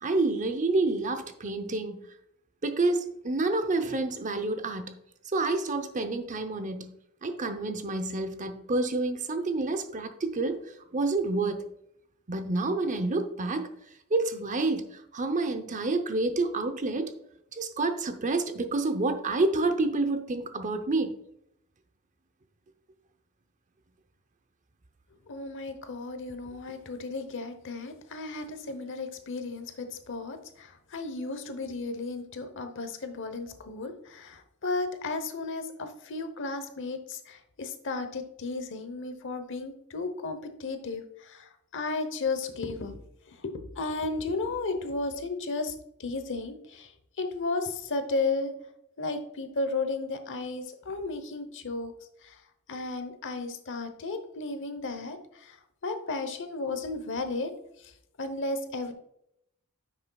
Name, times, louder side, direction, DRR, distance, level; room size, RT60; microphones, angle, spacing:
voice 1, 0.0-2.0 2.6-4.9 5.3-6.9 7.2-10.6 10.9-11.7 12.3-13.7 14.1-17.1 17.5-21.1, right 2 dB, 35° right, 0.7 m, -28 dB
voice 2, 25.3-43.0 43.3-45.7 46.0-46.9 47.2-48.5 49.0-51.9 52.2-52.4 52.7-55.6 55.8-57.5 57.8-57.9 58.2-58.9, left 3 dB, 60° left, 0.9 m, -34 dB
9.5 x 6.6 x 2.3 m
head